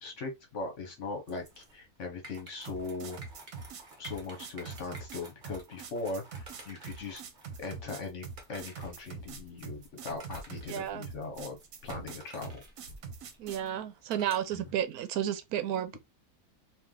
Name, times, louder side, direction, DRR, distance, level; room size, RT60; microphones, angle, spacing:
voice 1, 0.0-3.2 4.0-7.2 7.6-11.6 11.8-12.6 14.5-14.7, left 3 dB, 55° left, 1.2 m, -39 dB
sound 1, 1.3-14.7, right 2 dB, 35° right, 1.1 m, -52 dB
sound 2, 2.7-13.7, right 5 dB, 70° right, 1.2 m, -44 dB
voice 2, 10.7-11.0 13.4-16.0, right 10 dB, 90° right, 1.1 m, -32 dB
3.2 x 2.8 x 3.6 m
omnidirectional pair, 1.5 m